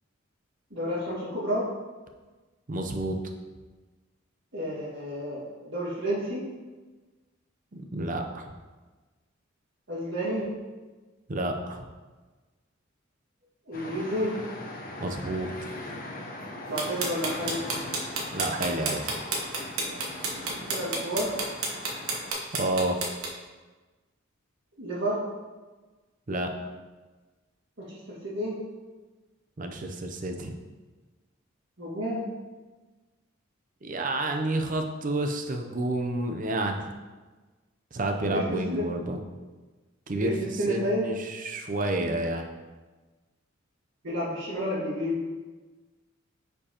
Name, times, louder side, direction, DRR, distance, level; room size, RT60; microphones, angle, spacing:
voice 1, 0.7-1.6 4.5-6.4 9.9-10.5 13.7-14.3 16.7-17.6 20.5-21.3 24.8-25.2 27.8-28.6 31.8-32.2 38.2-38.9 40.2-41.1 44.0-45.2, equal, 60° right, -12 dB, 1.9 m, -30 dB
voice 2, 2.7-3.2 7.7-8.5 11.3-11.9 15.0-15.5 18.3-19.1 22.5-23.0 26.3-26.5 29.6-30.5 33.8-36.8 37.9-39.2 40.1-42.5, right 2 dB, 40° right, 5 dB, 0.6 m, -30 dB
sound 1, 13.7-22.3, left 1 dB, 40° left, 0.9 m, -40 dB
sound 2, 16.8-23.3, right 3 dB, 85° right, 1.1 m, -30 dB
9.8 x 4.5 x 2.9 m, 1.3 s
head